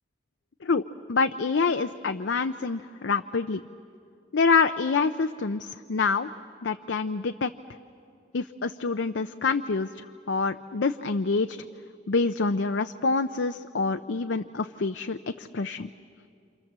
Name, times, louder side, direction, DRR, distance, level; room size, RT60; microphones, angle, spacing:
voice 1, 1.1-3.6 4.3-6.3 6.6-7.5 8.3-9.9 10.3-11.6 12.1-15.9, left 4 dB, 80° left, 8 dB, 0.6 m, -26 dB
28.0 x 27.5 x 7.4 m, 2.3 s
head